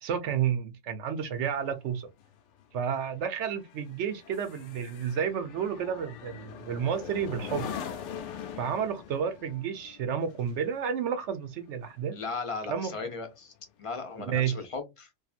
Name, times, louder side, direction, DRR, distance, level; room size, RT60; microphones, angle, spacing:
voice 1, 0.0-2.1 2.7-7.7 8.6-12.2 12.7-12.9 14.2-14.5, right 8 dB, 75° right, 0.9 m, -31 dB
sound 1, 1.2-12.9 13.3-13.6, left 8 dB, 75° left, 0.9 m, -43 dB
voice 2, 12.1-13.5 13.8-15.1, left 4 dB, 35° left, 0.6 m, -36 dB
2.7 x 2.4 x 2.4 m
omnidirectional pair, 1.3 m